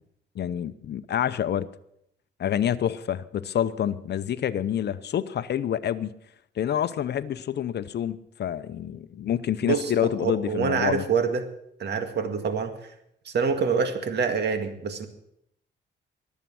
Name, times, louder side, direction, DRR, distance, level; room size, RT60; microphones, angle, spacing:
voice 1, 0.4-1.7 2.4-6.1 6.6-11.0, left 10 dB, 65° left, 14 dB, 0.7 m, -27 dB
voice 2, 9.6-11.4 11.8-12.7 13.3-15.1, right 5 dB, 65° right, 7 dB, 2.0 m, -26 dB
22.5 x 8.3 x 6.2 m, 0.77 s
cardioid pair, 85°, 19 cm